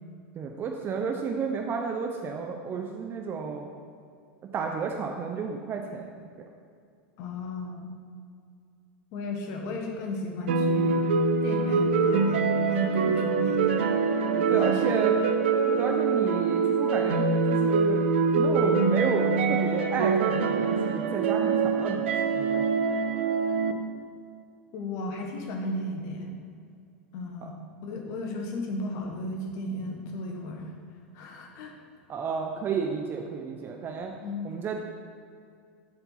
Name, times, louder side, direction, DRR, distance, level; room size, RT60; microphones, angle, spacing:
voice 1, 0.4-3.7 4.5-6.3 14.4-15.2 15.7-18.0 18.4-22.6 32.1-34.1 34.4-34.8, right 5 dB, 35° right, 2 dB, 0.6 m, -32 dB
voice 2, 7.2-7.9 9.1-11.1 11.4-13.7 14.5-14.9 24.7-26.3 27.1-27.6 27.8-30.7 31.1-31.7 34.2-34.5, left 1 dB, 55° left, 1 dB, 1.4 m, -34 dB
sound 1, 10.5-23.7, right 4 dB, 75° right, 0.6 m, -24 dB
7.5 x 4.5 x 5.7 m, 2.3 s
hypercardioid pair, 100°, 6 cm